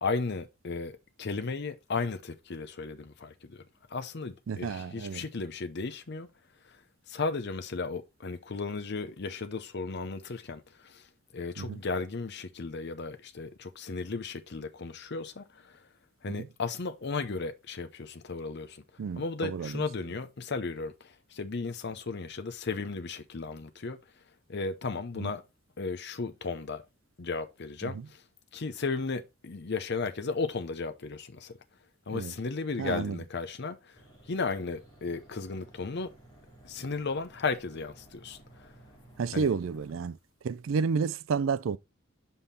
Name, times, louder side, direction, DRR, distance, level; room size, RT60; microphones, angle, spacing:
voice 1, 0.0-3.6 3.9-6.3 6.6-6.8 7.1-11.1 11.3-15.9 16.2-18.8 19.2-24.0 24.5-25.4 25.8-26.8 27.2-28.2 28.5-31.6 32.1-34.0 34.3-36.1 36.6-38.7 39.3-39.5, left 4 dB, 55° left, 0.7 m, -35 dB
voice 2, 4.5-5.3 11.6-11.8 16.3-16.5 19.0-19.8 25.2-25.3 27.8-28.1 32.1-32.3 32.8-33.2 39.2-40.2 40.4-41.8, right 5 dB, 75° right, 0.4 m, -31 dB
sound 1, 33.9-40.1, right 1 dB, 20° left, 2.5 m, -55 dB
5.6 x 5.5 x 4.1 m
head